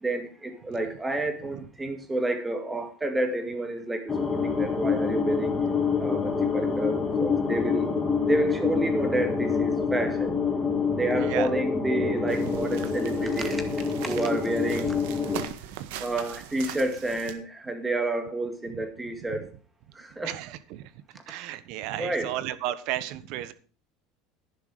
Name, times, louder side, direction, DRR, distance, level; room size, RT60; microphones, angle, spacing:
voice 1, 0.0-5.5 6.0-7.9 8.3-10.3 11.0-13.6 14.0-15.0 16.0-19.5 20.0-20.3 22.0-22.3, right 2 dB, 10° right, 6 dB, 2.1 m, -29 dB
sound 1, 4.1-15.5, left 5 dB, 10° left, 3.0 m, -27 dB
voice 2, 11.1-11.5 12.5-12.6 15.7-15.9 18.6-19.5 20.2-20.9 21.3-23.5, right 13 dB, 55° right, 15 dB, 1.2 m, -35 dB
sound 2, 12.3-17.3, right 11 dB, 75° right, 1.7 m, -41 dB
11.5 x 11.0 x 4.9 m, 0.37 s
cardioid pair, 160°, 0 cm